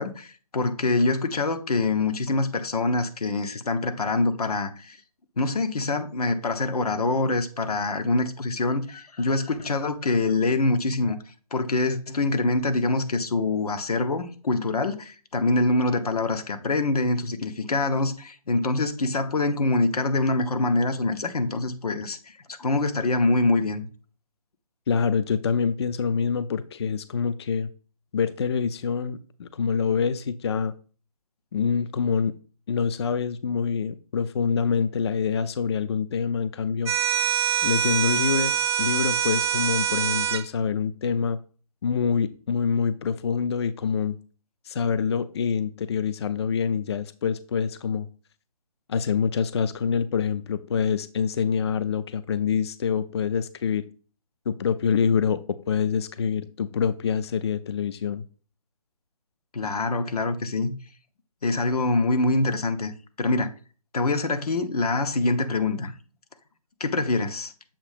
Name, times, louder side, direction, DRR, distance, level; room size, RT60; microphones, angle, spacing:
voice 1, 0.0-5.0 5.4-11.2 11.5-23.9 59.5-60.7 61.4-62.9 63.2-63.5 63.9-65.9 66.8-67.5, left 2 dB, 80° left, 1.0 m, -25 dB
voice 2, 24.9-27.7 28.1-30.7 31.5-32.3 32.7-36.9 37.6-38.5 38.8-41.4 41.8-44.2 44.7-48.1 48.9-53.8 54.5-55.4 55.7-58.2, left 6 dB, 45° left, 0.4 m, -26 dB
sound 1, 36.9-40.4, right 9 dB, 40° right, 0.5 m, -24 dB
7.1 x 2.7 x 4.9 m
hypercardioid pair, 155°, 19 cm